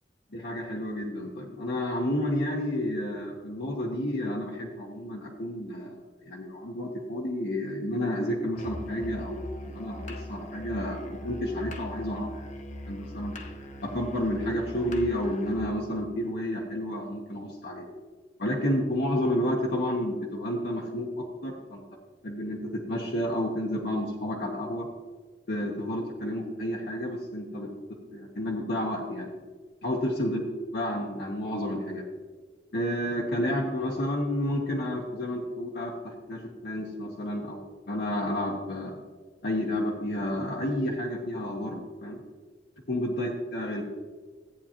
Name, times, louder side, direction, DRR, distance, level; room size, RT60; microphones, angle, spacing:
voice 1, 0.3-6.0 6.2-12.3 12.9-13.3 13.8-17.9 18.4-21.8 22.2-22.6 22.9-24.9 25.5-27.7 28.1-29.3 29.8-30.4 30.7-32.0 32.7-39.0 39.4-42.2 42.9-43.8, left 1 dB, 65° left, -2 dB, 1.0 m, -30 dB
Musical instrument, 8.5-15.7, equal, 45° left, 0.8 m, -40 dB
14.0 x 8.7 x 2.9 m, 1.5 s
head